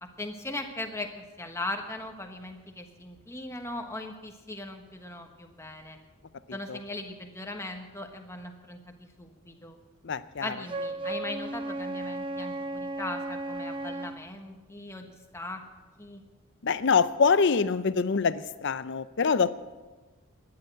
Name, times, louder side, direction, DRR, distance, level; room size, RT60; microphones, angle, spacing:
voice 1, 0.0-6.0 6.5-9.8 10.4-15.6 16.0-16.2, left 2 dB, 15° left, 4 dB, 1.3 m, -39 dB
voice 2, 10.0-10.5 16.6-19.6, left 5 dB, 55° left, 14 dB, 0.6 m, -25 dB
Wind instrument woodwind instrument, 10.7-14.2, right 2 dB, 25° right, 0.5 m, -35 dB
13.0 x 10.5 x 7.8 m, 1.3 s
head